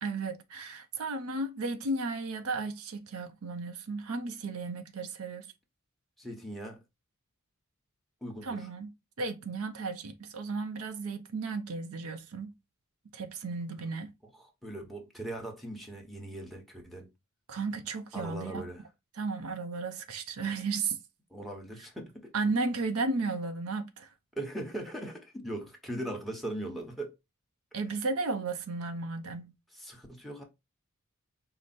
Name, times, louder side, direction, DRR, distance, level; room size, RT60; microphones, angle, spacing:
voice 1, 0.0-5.5 8.4-8.9 9.2-12.5 13.1-14.1 17.5-18.6 19.2-21.0 22.3-24.1 27.7-29.5, right 3 dB, 85° right, 0.6 m, -34 dB
voice 2, 6.2-6.8 8.2-8.7 14.4-17.1 18.1-18.8 21.3-22.3 24.4-27.1 29.7-30.4, right 1 dB, ahead, 1.0 m, -39 dB
4.8 x 2.1 x 4.2 m
head